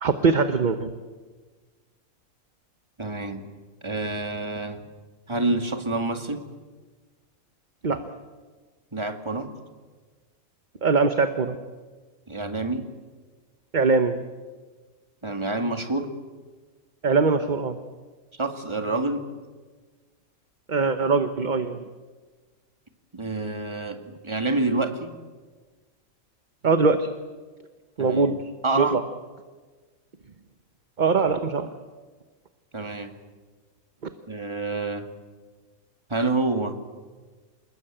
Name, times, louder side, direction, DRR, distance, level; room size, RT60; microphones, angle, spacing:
voice 1, 0.0-0.9 7.8-8.0 10.8-11.6 13.7-14.2 17.0-17.8 20.7-21.8 26.6-27.1 28.0-28.4 28.8-29.0 31.0-31.7, right 4 dB, 35° right, 8 dB, 1.1 m, -22 dB
voice 2, 3.0-3.5 3.8-4.8 5.3-6.4 8.9-9.5 12.3-12.9 15.2-16.1 18.4-19.2 23.1-25.1 28.0-28.4 28.6-29.0 32.7-33.1 34.3-35.1 36.1-36.8, right 2 dB, 20° right, 6 dB, 2.1 m, -27 dB
28.0 x 21.0 x 8.9 m, 1.4 s
omnidirectional pair, 1.5 m